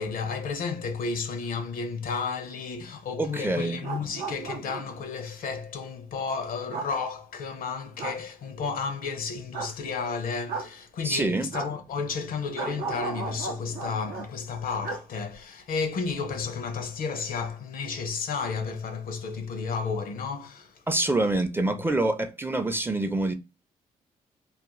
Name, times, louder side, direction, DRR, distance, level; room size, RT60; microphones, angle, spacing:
voice 1, 0.0-20.8, left 5 dB, 70° left, 0.6 m, -32 dB
voice 2, 3.2-3.8 11.0-11.5 20.9-23.3, right 2 dB, 15° right, 0.4 m, -26 dB
sound 1, 3.7-5.1 6.7-6.9 8.0-8.2 9.5-9.7 10.5-10.7 11.5-11.7 12.6-14.3 14.8-15.0 15.3-15.4, right 4 dB, 85° right, 0.6 m, -35 dB
2.4 x 2.1 x 3.0 m
supercardioid pair, 60°, 15 cm